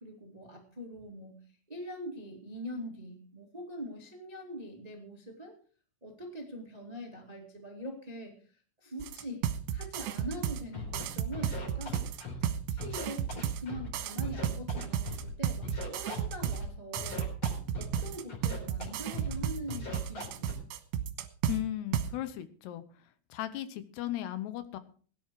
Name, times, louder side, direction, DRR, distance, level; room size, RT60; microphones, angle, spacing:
voice 1, 0.0-1.4 1.7-5.6 6.0-8.4 8.8-12.0 12.4-17.3 17.8-20.6, equal, 60° right, 2 dB, 0.4 m, -43 dB
sound 1, 9.0-10.6 10.9-13.6 13.9-16.6 16.9-21.6 21.9-22.1, right 10 dB, 75° right, 3.1 m, -33 dB
Scratching (performance technique), 10.7-11.0 11.3-12.5 12.8-13.9 14.2-15.3 15.6-16.7 17.0-18.0 18.3-18.9 19.1-19.4 19.7-20.5, left 3 dB, 30° left, 4.3 m, -40 dB
voice 2, 21.5-22.8 23.3-24.8, left 13 dB, 75° left, 12 dB, 2.8 m, -36 dB
17.0 x 10.5 x 4.7 m, 0.42 s
omnidirectional pair, 5.2 m